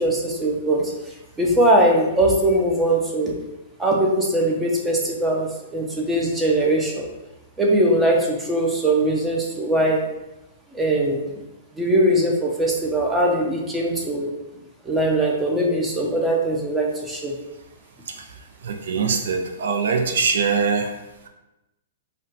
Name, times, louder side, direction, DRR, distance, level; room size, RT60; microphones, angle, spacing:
voice 1, 0.0-3.4 3.8-7.1 7.6-10.0 10.7-11.2 11.8-14.3 14.8-17.4, right 1 dB, 10° right, -2 dB, 0.5 m, -21 dB
voice 2, 18.6-20.9, right 5 dB, 75° right, 5 dB, 0.4 m, -22 dB
2.5 x 2.2 x 3.9 m, 0.95 s
hypercardioid pair, 140°, 0 cm